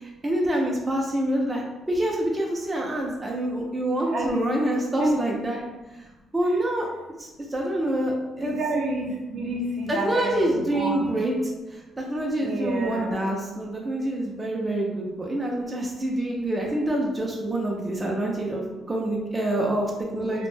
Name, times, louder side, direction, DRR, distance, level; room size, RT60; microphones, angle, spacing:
voice 1, 0.0-5.6 5.9-6.1 6.3-6.9 7.2-8.5 9.9-20.5, right 1 dB, 20° right, -2 dB, 0.5 m, -26 dB
voice 2, 4.0-4.4 5.0-5.1 5.6-5.7 8.4-11.2 12.3-13.3 20.0-20.5, right 1 dB, 65° right, -1 dB, 0.7 m, -29 dB
2.5 x 2.1 x 3.2 m, 1.1 s
cardioid pair, 90°, 0 cm